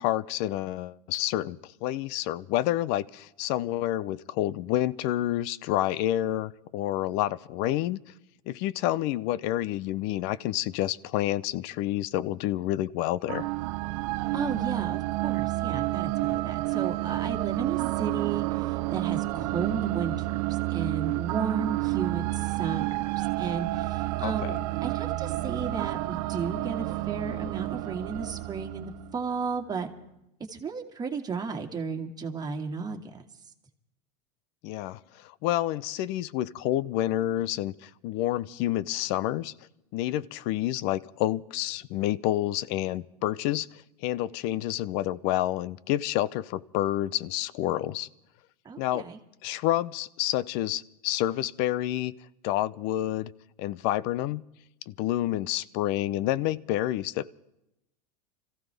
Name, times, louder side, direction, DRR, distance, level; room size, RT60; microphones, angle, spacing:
voice 1, 0.0-8.0 8.5-13.5 24.2-24.5 34.6-39.5 39.9-48.1 48.8-49.1 49.4-52.2 52.4-53.3 53.6-54.4 54.9-57.3, left 14 dB, 55° left, 20 dB, 0.7 m, -29 dB
sound 1, 13.3-29.5, right 19 dB, 65° right, 0.7 m, -30 dB
voice 2, 14.3-24.6 24.8-29.9 30.5-33.2 48.6-49.2, right 5 dB, 20° right, 2 dB, 2.2 m, -34 dB
26.0 x 15.0 x 3.5 m, 0.85 s
hypercardioid pair, 110°, 20 cm